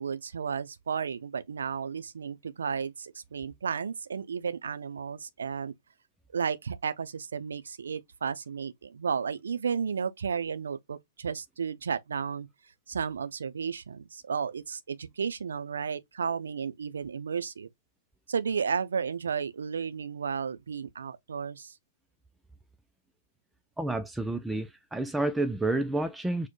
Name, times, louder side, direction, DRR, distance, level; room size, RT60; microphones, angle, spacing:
voice 1, 0.0-5.7 6.3-12.5 12.9-17.7 18.3-21.7, right 6 dB, 80° right, 0.4 m, -33 dB
voice 2, 23.8-26.5, right 2 dB, 5° right, 0.3 m, -29 dB
4.3 x 2.1 x 3.0 m
hypercardioid pair, 120°, 0 cm